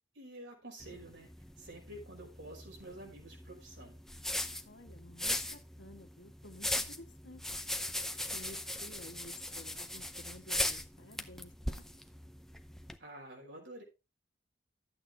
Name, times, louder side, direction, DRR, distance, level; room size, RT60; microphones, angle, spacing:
voice 1, 0.1-1.3 1.6-4.0 13.0-13.8, right 1 dB, 75° right, 0 dB, 5.4 m, -49 dB
sound 1, 0.8-13.0, left 1 dB, ahead, 0.7 m, -39 dB
voice 2, 4.6-7.4 8.3-11.8, left 1 dB, 80° left, 5 dB, 1.7 m, -53 dB
12.5 x 8.7 x 3.5 m, 0.27 s
head